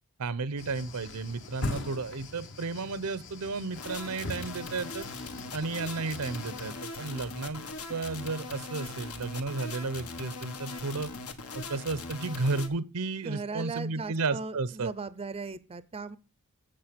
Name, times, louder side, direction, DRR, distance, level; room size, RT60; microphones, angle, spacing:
voice 1, 0.2-5.1 5.5-7.6 7.9-11.1 11.5-14.9, right 3 dB, 90° right, 0.7 m, -33 dB
sound 1, 0.6-6.7, left 2 dB, 55° left, 1.0 m, -41 dB
sound 2, 3.8-12.7, left 3 dB, 80° left, 1.3 m, -40 dB
voice 2, 13.2-16.2, right 4 dB, 25° right, 0.5 m, -38 dB
8.9 x 7.5 x 5.1 m
head